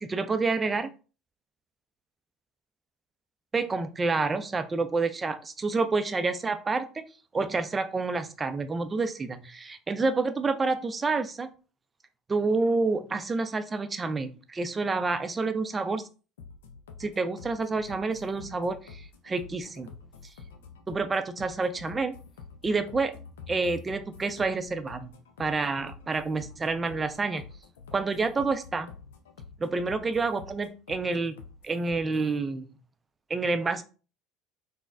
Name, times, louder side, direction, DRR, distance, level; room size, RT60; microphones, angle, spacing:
voice 1, 0.0-0.9 3.5-7.0 7.3-11.5 12.3-16.1 17.0-19.9 20.9-22.2 22.6-23.2 23.5-27.4 27.9-28.9 29.6-31.4 31.6-32.7 33.3-33.8, right 3 dB, 25° right, 10 dB, 0.4 m, -28 dB
sound 1, 16.4-32.4, left 5 dB, 85° left, 0.4 m, -48 dB
3.9 x 2.1 x 2.4 m, 0.35 s
hypercardioid pair, 70°, 0 cm